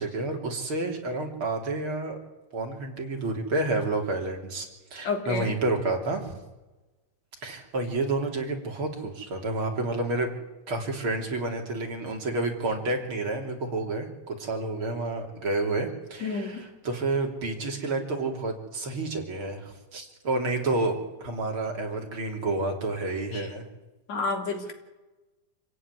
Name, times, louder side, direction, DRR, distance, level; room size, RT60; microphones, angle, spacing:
voice 1, 0.0-2.2 2.5-6.3 7.4-10.3 10.7-23.6, right 2 dB, 40° right, 2 dB, 3.9 m, -30 dB
voice 2, 5.0-5.6 16.2-16.6 23.3-23.5 24.1-24.7, left 4 dB, 60° left, 4 dB, 4.2 m, -30 dB
27.0 x 16.0 x 9.8 m, 1.1 s
omnidirectional pair, 3.5 m